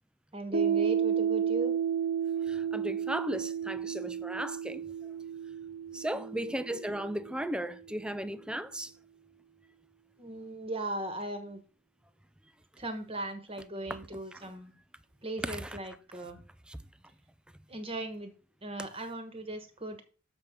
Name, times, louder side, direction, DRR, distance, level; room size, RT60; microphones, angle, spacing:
voice 1, 0.3-1.7 6.1-6.6 10.2-11.6 12.8-14.7 15.2-16.4 17.7-18.3 18.6-20.0, right 1 dB, 25° right, 1.2 m, -38 dB
Piano, 0.5-7.8, right 8 dB, 50° right, 0.9 m, -32 dB
voice 2, 2.5-5.1 5.9-8.9 13.9-14.0 14.3-14.5 15.4-15.8 16.7-16.8, equal, 5° right, 0.4 m, -36 dB
7.2 x 5.2 x 4.4 m
head